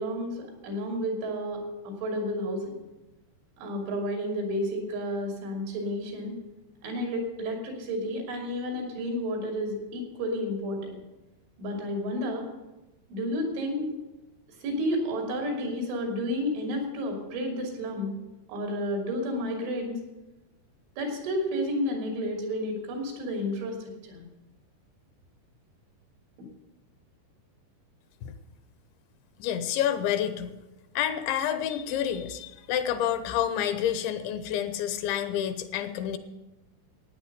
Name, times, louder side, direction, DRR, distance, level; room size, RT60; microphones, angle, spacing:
voice 1, 0.0-2.8 3.6-6.3 6.8-11.0 11.6-12.5 13.1-13.9 14.6-18.1 18.5-20.0 21.0-24.2, equal, 85° right, 2 dB, 5.2 m, -31 dB
voice 2, 29.4-30.6 31.0-36.2, left 10 dB, 80° left, 11 dB, 3.1 m, -29 dB
15.0 x 9.4 x 6.7 m, 1.0 s
omnidirectional pair, 5.3 m